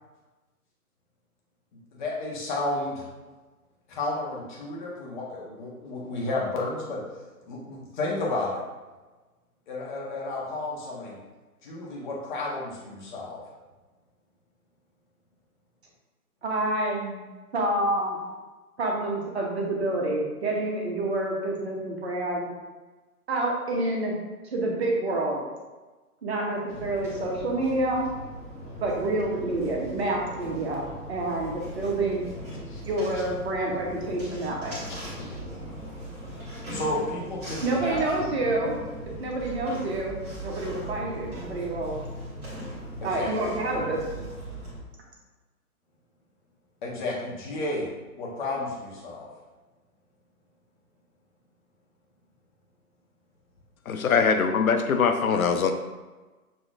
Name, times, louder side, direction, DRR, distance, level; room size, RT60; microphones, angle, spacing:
voice 1, 1.9-3.1 3.9-7.0 7.4-8.6 9.7-11.2 11.6-13.4 32.7-32.8 33.1-33.2 35.2-35.4 36.7-38.0 43.0-43.3 46.8-47.9 48.2-49.3, left 2 dB, 30° left, -4 dB, 1.1 m, -32 dB
voice 2, 16.4-17.2 17.5-18.2 18.8-22.5 23.3-24.2 24.5-25.4 26.2-28.1 28.8-32.2 32.8-34.8 37.6-38.7 39.2-41.9 43.0-44.2, right 2 dB, 45° right, -1 dB, 0.9 m, -28 dB
sound 1, 26.7-44.8, right 1 dB, 15° right, 1.1 m, -39 dB
voice 3, 53.9-55.7, left 5 dB, 65° left, 6 dB, 0.7 m, -22 dB
6.4 x 2.8 x 2.4 m, 1.2 s
figure-of-eight pair, 135°, 46 cm